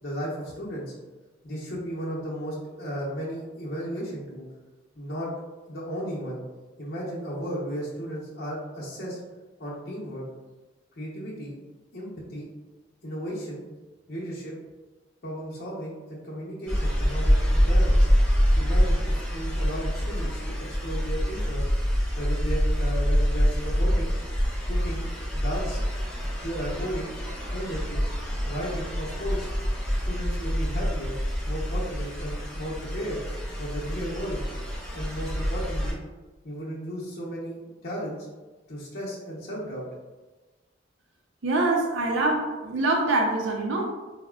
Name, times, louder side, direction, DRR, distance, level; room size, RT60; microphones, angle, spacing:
voice 1, 0.0-0.9 1.4-4.5 5.0-5.3 5.7-6.4 6.8-9.2 9.6-10.2 11.0-11.5 11.9-12.5 13.0-13.6 14.1-14.5 15.2-18.1 18.6-20.5 20.8-21.7 22.2-24.1 24.7-25.1 25.3-25.8 26.4-27.1 27.5-28.0 28.5-29.5 30.0-31.1 31.5-33.2 33.6-34.4 34.9-36.0 36.4-38.3 38.7-39.8, equal, 55° left, -6 dB, 0.8 m, -34 dB
sound 1, 16.7-35.9, equal, 5° left, 0.9 m, -26 dB
voice 2, 41.4-43.9, right 2 dB, 85° right, 1 dB, 0.5 m, -24 dB
4.6 x 2.1 x 2.3 m, 1.2 s
head